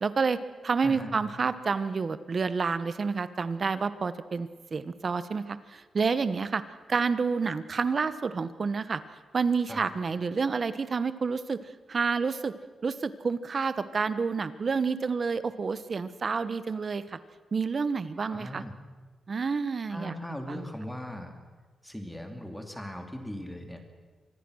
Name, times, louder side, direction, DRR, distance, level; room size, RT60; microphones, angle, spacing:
voice 1, 0.0-6.6 6.9-9.0 9.3-11.6 11.9-12.5 12.8-17.2 17.5-18.6 19.3-20.1 20.5-20.7, right 5 dB, 35° right, 13 dB, 1.1 m, -29 dB
voice 2, 0.8-1.1 9.7-9.9 18.2-18.8 19.9-21.3 21.8-23.8, equal, 5° left, 5 dB, 2.5 m, -39 dB
26.0 x 20.5 x 6.4 m, 1.3 s
wide cardioid pair, 145°, 0 cm